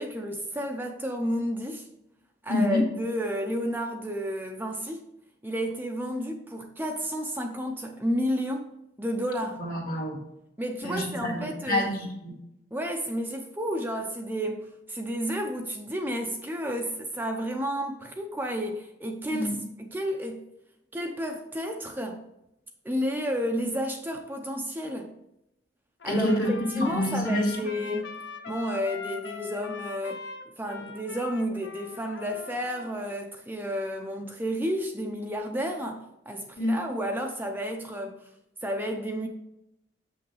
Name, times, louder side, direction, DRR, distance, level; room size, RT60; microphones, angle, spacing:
voice 1, 0.0-1.9 2.4-5.1 5.4-8.7 9.0-9.6 10.6-11.9 12.7-19.5 19.8-20.4 20.9-22.2 22.8-25.1 26.0-26.4 26.7-28.1 28.5-30.2 30.6-38.2 38.6-39.3, equal, 10° right, 0.6 m, -31 dB
voice 2, 2.5-2.8 9.6-10.2 10.8-12.3 19.3-19.6 26.0-27.6 36.6-36.7, left 1 dB, 50° left, 2.2 m, -27 dB
Trumpet, 26.0-33.1, left 5 dB, 80° left, 0.8 m, -42 dB
7.2 x 5.9 x 3.2 m
head